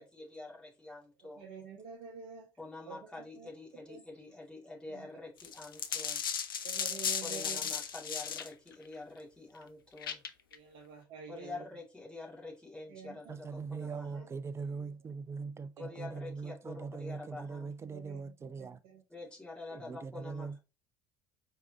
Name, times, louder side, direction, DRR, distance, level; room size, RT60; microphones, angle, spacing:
voice 1, 0.0-1.5 2.6-6.2 7.2-10.2 11.3-14.2 15.8-17.7 19.1-20.6, left 2 dB, 10° left, 2.4 m, -47 dB
voice 2, 1.4-2.5 2.9-3.0 3.4-3.5 3.9-4.0 4.9-5.0 6.6-7.6 10.5-11.6 12.9-13.4 14.2-14.3 17.9-18.2 18.9-19.0 19.7-19.8, right 6 dB, 60° right, 1.1 m, -47 dB
sound 1, 5.4-8.5 10.0-10.5, left 7 dB, 80° left, 0.4 m, -35 dB
voice 3, 13.3-18.8 19.7-20.6, right 5 dB, 25° right, 0.5 m, -41 dB
4.7 x 3.5 x 2.7 m
figure-of-eight pair, 60°, 11 cm